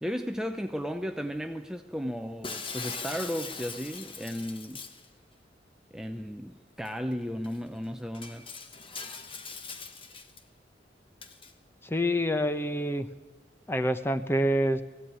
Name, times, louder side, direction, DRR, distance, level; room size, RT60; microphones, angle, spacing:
voice 1, 0.0-4.9 5.9-8.5, equal, 5° right, 0.7 m, -35 dB
Shatter, 2.4-5.1 6.9-7.0 7.4-7.6 8.1-10.4 11.2-11.5, left 4 dB, 30° left, 1.4 m, -41 dB
voice 2, 11.8-13.1 13.7-14.8, equal, 15° left, 1.0 m, -27 dB
20.0 x 15.5 x 9.0 m
head